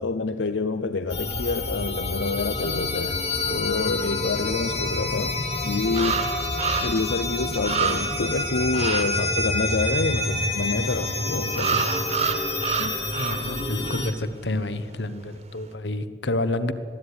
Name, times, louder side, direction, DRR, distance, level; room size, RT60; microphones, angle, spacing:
voice 1, 0.0-3.2 3.5-6.3 6.8-11.8 12.8-13.0 14.5-14.6, left 3 dB, 90° left, 10 dB, 0.7 m, -27 dB
sound 1, 1.1-14.1, left 2 dB, 35° left, 1.8 m, -28 dB
sound 2, 5.1-5.2 5.9-7.1 7.4-7.5 7.6-8.3 8.7-9.1 11.5-13.6 13.8-14.1, right 6 dB, 35° right, 1.5 m, -28 dB
voice 2, 13.2-16.7, left 2 dB, 75° left, 13 dB, 1.1 m, -29 dB
21.5 x 13.0 x 9.6 m, 2.3 s
head